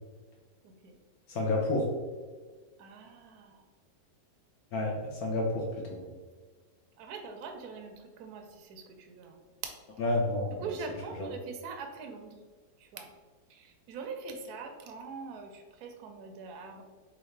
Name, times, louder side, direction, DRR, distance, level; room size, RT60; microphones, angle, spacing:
voice 1, 0.6-0.9 2.8-3.6 7.0-9.7 10.6-12.4 12.8-13.1 13.5-16.8, right 4 dB, 70° right, 4 dB, 0.9 m, -43 dB
voice 2, 1.3-1.9 4.7-6.1 10.0-10.7, left 2 dB, 65° left, -1 dB, 1.1 m, -30 dB
3.9 x 3.6 x 3.2 m, 1.4 s
omnidirectional pair, 2.0 m